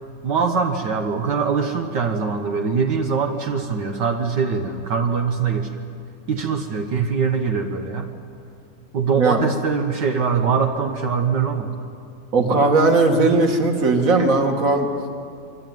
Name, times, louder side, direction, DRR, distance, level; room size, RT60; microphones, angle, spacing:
voice 1, 0.2-5.7 6.3-8.1 8.9-11.7, right 5 dB, 65° right, 3 dB, 1.0 m, -22 dB
voice 2, 12.3-14.9, right 3 dB, 30° right, 4 dB, 1.7 m, -18 dB
26.5 x 23.5 x 9.4 m, 2.4 s
omnidirectional pair, 4.2 m